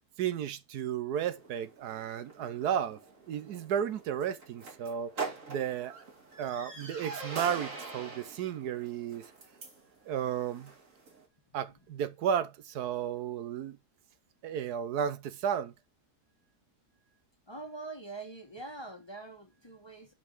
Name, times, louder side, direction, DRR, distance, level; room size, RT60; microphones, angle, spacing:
voice 1, 0.2-3.0 3.3-6.0 6.4-9.3 10.1-10.7 11.5-13.8 14.4-15.7, right 9 dB, 80° right, 1.3 m, -33 dB
sound 1, 1.2-11.2, right 4 dB, 55° right, 2.6 m, -44 dB
voice 2, 17.5-20.1, right 3 dB, 15° left, 1.4 m, -44 dB
5.7 x 5.6 x 5.4 m
omnidirectional pair, 1.7 m